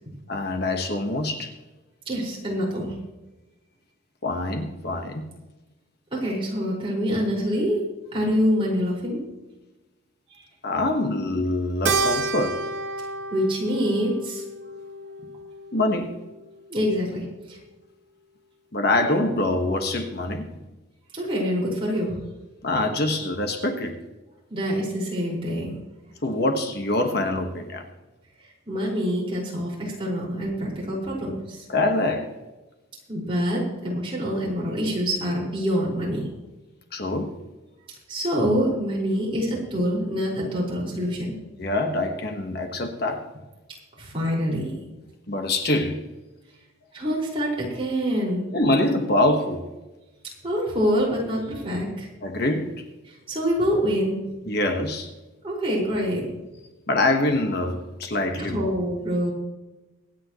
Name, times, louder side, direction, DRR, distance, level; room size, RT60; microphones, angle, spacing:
voice 1, 0.3-1.5 4.2-5.3 10.6-12.6 15.7-16.1 18.7-20.5 22.6-24.0 26.2-27.9 31.7-32.3 36.9-37.4 41.6-43.2 45.3-46.0 48.5-49.7 52.2-52.8 54.4-55.1 56.9-58.7, left 2 dB, 50° left, 5 dB, 1.4 m, -24 dB
voice 2, 2.1-2.9 6.1-7.8 8.1-9.2 10.3-10.4 13.3-14.4 16.7-17.6 21.1-22.2 24.5-25.8 28.7-31.6 33.1-36.2 38.1-41.4 44.0-44.7 46.9-48.5 50.4-52.1 53.3-54.2 55.4-56.3 58.4-59.3, equal, 25° right, -5 dB, 5.2 m, -25 dB
Keyboard (musical), 11.9-16.4, right 3 dB, 60° right, 0.9 m, -30 dB
24.5 x 9.3 x 3.1 m, 1.1 s
head